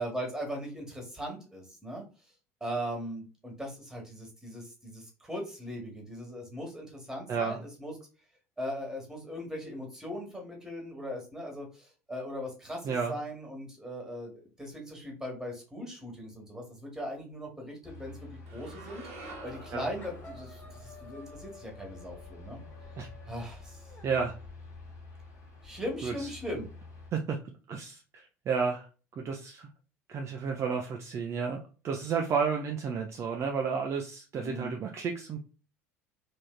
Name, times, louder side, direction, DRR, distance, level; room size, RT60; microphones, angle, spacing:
voice 1, 0.0-2.0 2.6-7.9 8.6-19.0 19.4-22.6 23.2-23.9 25.6-26.7 34.3-34.7, equal, 5° right, 0 dB, 1.5 m, -39 dB
sound 1, 17.8-27.1, left 3 dB, 45° left, 1.2 m, -49 dB
sound 2, 18.5-22.7, right 3 dB, 65° right, 1.1 m, -49 dB
sound 3, 18.9-19.1 19.4-19.7 20.0-24.1, left 2 dB, 20° left, 0.7 m, -54 dB
voice 2, 24.0-24.3 26.0-26.3 27.1-27.4 27.7-28.9 29.2-29.7 30.1-35.4, right 5 dB, 35° right, 2 dB, 0.5 m, -32 dB
3.4 x 2.6 x 2.2 m, 0.34 s
figure-of-eight pair, 65°, 8 cm